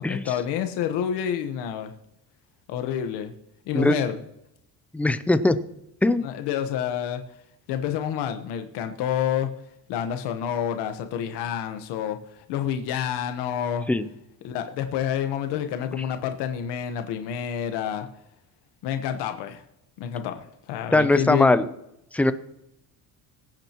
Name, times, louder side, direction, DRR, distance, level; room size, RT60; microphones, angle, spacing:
voice 1, 0.0-1.9 2.7-3.3 3.7-4.2 6.2-7.2 7.7-9.5 9.9-12.2 12.5-13.9 14.4-18.1 18.8-19.6 20.0-21.6, left 9 dB, 85° left, 7 dB, 1.2 m, -28 dB
voice 2, 4.9-5.6 6.0-6.3 13.9-14.1 20.9-21.7 22.1-22.3, left 2 dB, 5° left, 12 dB, 0.3 m, -20 dB
22.0 x 9.0 x 3.0 m, 0.82 s
cardioid pair, 155°, 40 cm